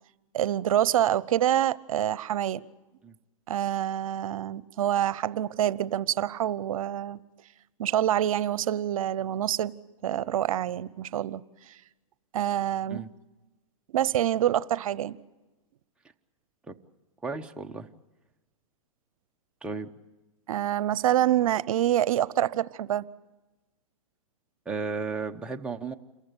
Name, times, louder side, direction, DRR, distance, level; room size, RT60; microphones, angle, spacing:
voice 1, 0.3-2.6 3.5-7.2 7.8-9.7 10.0-11.4 12.3-13.0 13.9-15.2 20.5-23.1, right 11 dB, 75° right, 0.7 m, -26 dB
voice 2, 17.2-17.9 19.6-19.9 24.7-25.9, right 4 dB, 5° right, 0.9 m, -34 dB
28.0 x 15.0 x 9.0 m
hypercardioid pair, 140°, 18 cm